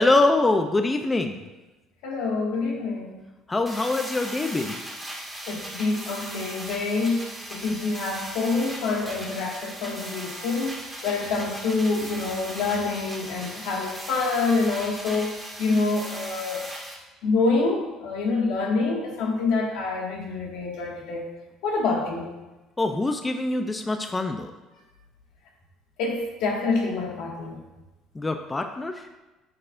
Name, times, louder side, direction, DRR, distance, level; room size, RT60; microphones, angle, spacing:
voice 1, 0.0-1.4 3.5-4.8 22.8-24.5 28.1-29.1, left 2 dB, 15° left, 6 dB, 0.5 m, -24 dB
voice 2, 2.0-3.2 5.5-7.2 7.5-16.6 17.2-21.2 21.6-22.3 26.0-27.6, left 3 dB, 80° left, -1 dB, 1.8 m, -26 dB
sound 1, 3.7-16.9, right 1 dB, ahead, 2.0 m, -38 dB
9.7 x 6.6 x 2.5 m, 1.1 s
cardioid pair, 125°, 0 cm